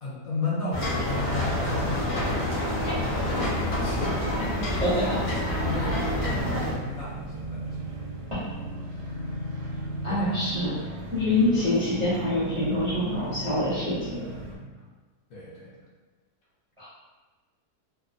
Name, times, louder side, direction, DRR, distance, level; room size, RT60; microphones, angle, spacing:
voice 1, 0.0-4.7 5.6-7.9 9.1-9.2 10.1-10.4 10.8-10.9 14.8-14.9 15.3-15.8, left 3 dB, 65° left, -6 dB, 1.1 m, -35 dB
sound 1, 0.7-6.7, left 1 dB, 85° left, 0.4 m, -27 dB
sound 2, 5.3-14.6, right 1 dB, 70° right, 0.7 m, -36 dB
voice 2, 10.0-10.7 11.1-14.1 16.8-16.9, left 1 dB, 55° right, -12 dB, 0.3 m, -25 dB
2.8 x 2.2 x 2.5 m, 1.3 s
omnidirectional pair, 1.8 m